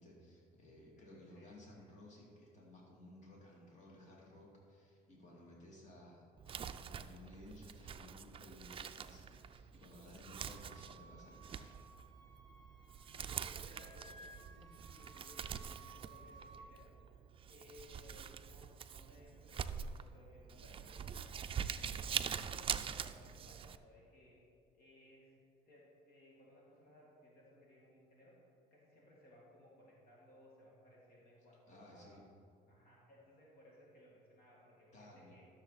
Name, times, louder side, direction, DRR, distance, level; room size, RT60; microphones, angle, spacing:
voice 1, 0.0-11.7 31.7-32.2 34.9-35.4, left 1 dB, 45° left, -3 dB, 2.5 m, -57 dB
voice 2, 1.0-1.9 5.3-5.7 13.0-17.2 17.5-22.1 22.5-24.4 24.7-25.4 25.7-32.2 32.7-35.5, left 1 dB, 65° left, -4 dB, 2.3 m, -62 dB
Crumpling crinkling, 6.4-23.8, right 7 dB, 35° right, 0.4 m, -45 dB
Wind instrument woodwind instrument, 10.4-13.3 13.6-16.7, right 3 dB, 20° left, 1.3 m, -59 dB
12.5 x 6.8 x 4.1 m, 2.6 s
cardioid pair, 110°, 17 cm